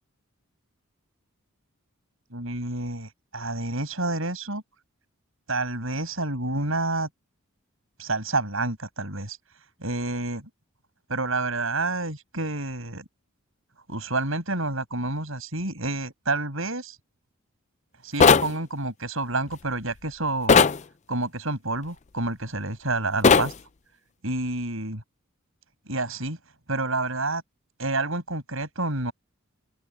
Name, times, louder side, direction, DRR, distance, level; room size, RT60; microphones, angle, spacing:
voice 1, 2.3-4.6 5.5-7.1 8.0-9.4 9.8-10.5 11.1-13.0 13.9-17.0 18.0-20.6 21.1-23.5 24.2-25.0 25.9-26.4 26.7-27.4 27.8-29.1, right 2 dB, 70° right, 7.7 m, -29 dB
sound 1, 18.2-18.5 20.5-20.8 23.2-23.5, left 5 dB, 35° left, 0.5 m, -16 dB
head